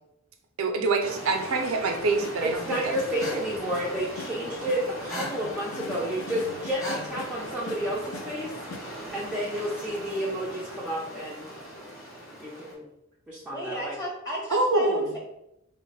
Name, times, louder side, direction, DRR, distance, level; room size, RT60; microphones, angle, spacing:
voice 1, 0.6-2.9 3.3-3.4 14.5-15.1, right 3 dB, 80° right, 4 dB, 0.5 m, -25 dB
sound 1, 1.0-12.7, right 1 dB, 40° left, 1.4 m, -38 dB
sound 2, 2.0-8.8, left 3 dB, 80° left, 0.4 m, -42 dB
voice 2, 2.4-8.5 9.1-11.5 12.4-12.9 13.3-14.0, equal, 5° right, -6 dB, 0.4 m, -31 dB
voice 3, 13.5-15.2, equal, 20° left, -4 dB, 1.0 m, -34 dB
3.0 x 2.1 x 3.9 m, 0.82 s
head